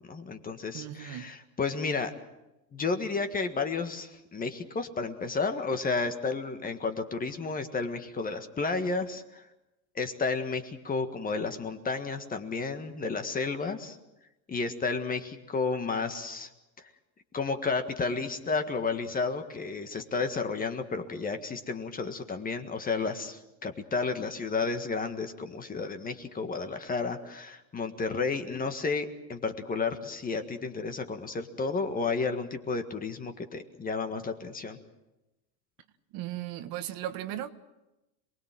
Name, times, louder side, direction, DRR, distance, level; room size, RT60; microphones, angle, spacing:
voice 1, 0.1-2.2 2.7-9.4 10.0-14.0 14.5-16.5 17.3-34.8, left 4 dB, 15° left, 1.7 m, -32 dB
voice 2, 0.7-1.3 36.1-37.5, right 13 dB, 45° right, 1.6 m, -36 dB
27.5 x 20.5 x 7.6 m
supercardioid pair, 135°, 49 cm